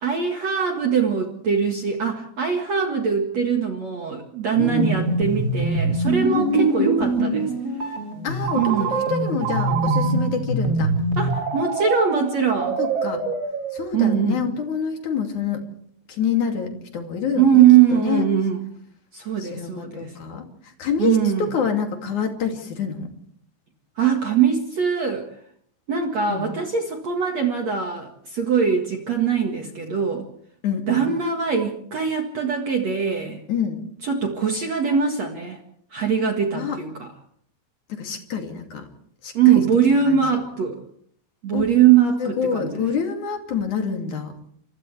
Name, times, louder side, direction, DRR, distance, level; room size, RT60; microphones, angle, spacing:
voice 1, 0.0-7.5 8.6-8.9 11.2-12.8 13.9-14.4 17.4-18.7 19.1-20.2 21.0-21.5 24.0-25.3 25.9-30.3 30.9-33.4 34.0-35.6 35.9-37.1 39.3-40.8 41.4-42.8, right 7 dB, 55° right, 3 dB, 1.9 m, -21 dB
sound 1, 4.5-11.4, right 2 dB, 20° right, 4.8 m, -23 dB
voice 2, 4.6-5.0 6.3-7.0 8.2-10.9 12.8-13.2 13.7-15.6 16.1-17.6 17.9-18.3 19.4-23.1 26.3-26.5 30.6-31.1 33.5-33.8 36.5-36.8 37.9-38.9 39.2-39.6 40.0-40.4 41.5-41.7 42.2-44.3, left 7 dB, 45° left, 3 dB, 3.5 m, -27 dB
Telephone, 8.4-10.4 11.3-14.3, right 7 dB, 70° right, 4.5 m, -28 dB
29.0 x 26.5 x 3.4 m, 0.65 s
omnidirectional pair, 5.7 m